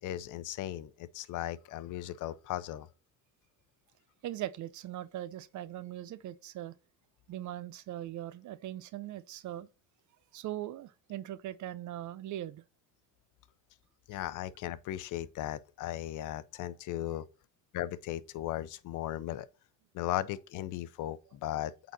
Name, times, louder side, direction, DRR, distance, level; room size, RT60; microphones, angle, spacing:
voice 1, 0.0-2.9 14.1-17.3 17.7-19.5 19.9-21.9, left 13 dB, 85° left, 0.7 m, -37 dB
voice 2, 4.2-6.7 7.3-9.7 10.3-12.6, right 13 dB, 75° right, 0.7 m, -40 dB
8.3 x 4.0 x 4.0 m
cardioid pair, 90°, 30 cm